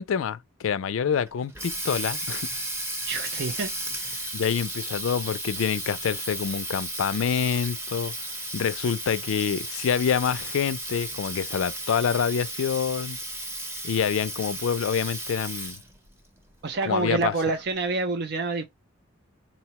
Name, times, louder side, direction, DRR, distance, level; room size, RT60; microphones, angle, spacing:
voice 1, 0.0-2.5 4.3-8.1 8.5-13.2 13.8-15.8 16.8-17.3, left 7 dB, 75° left, 0.4 m, -27 dB
Water tap faucet, 1.3-16.0, right 1 dB, 10° right, 0.6 m, -34 dB
voice 2, 3.1-4.3 16.6-18.6, right 3 dB, 50° right, 0.5 m, -28 dB
4.0 x 2.1 x 2.8 m
head